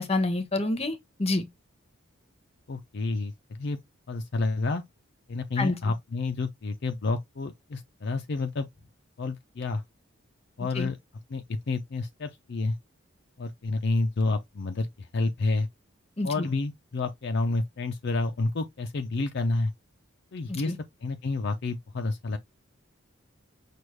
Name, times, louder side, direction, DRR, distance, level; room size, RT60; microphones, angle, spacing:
voice 1, 0.0-1.4 5.6-5.8 10.8-10.9 16.2-16.5 20.5-20.8, left 2 dB, 30° left, 0.9 m, -28 dB
voice 2, 2.7-3.8 4.1-4.8 5.3-8.7 9.2-9.8 10.6-11.0 11.3-12.8 13.4-15.7 16.2-19.7 20.3-22.4, left 3 dB, 55° left, 0.5 m, -29 dB
6.1 x 2.5 x 3.2 m
head